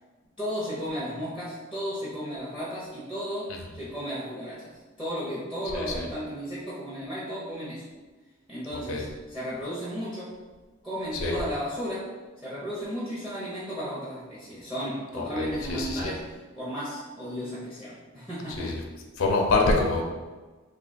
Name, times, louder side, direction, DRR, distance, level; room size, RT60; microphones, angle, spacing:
voice 1, 0.4-7.8 8.5-10.4 10.8-12.1 12.4-18.9, equal, 5° right, -8 dB, 0.6 m, -34 dB
voice 2, 5.7-6.1 8.9-9.0 11.2-11.4 15.2-16.1 18.6-18.8 19.2-20.0, left 3 dB, 70° left, 1 dB, 0.5 m, -25 dB
2.8 x 2.3 x 4.0 m, 1.3 s
head